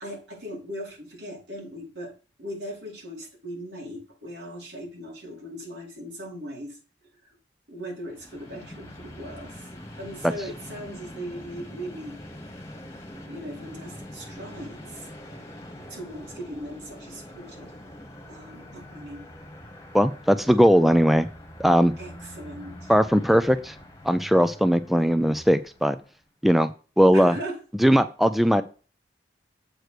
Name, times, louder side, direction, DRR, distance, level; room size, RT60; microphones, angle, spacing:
voice 1, 0.0-2.1 2.4-6.8 7.7-9.7 10.0-12.2 13.2-15.1 15.9-17.7 18.3-19.3 20.5-20.8 22.0-22.9 27.1-27.6, equal, 80° right, -2 dB, 4.4 m, -39 dB
Train, 8.0-26.1, left 1 dB, 15° left, 1.7 m, -44 dB
voice 2, 19.9-21.3 21.6-21.9 22.9-23.8 24.0-26.0 26.4-26.7 27.0-27.4 27.8-28.6, equal, ahead, 11 dB, 0.4 m, -19 dB
7.8 x 4.7 x 6.6 m, 0.36 s
head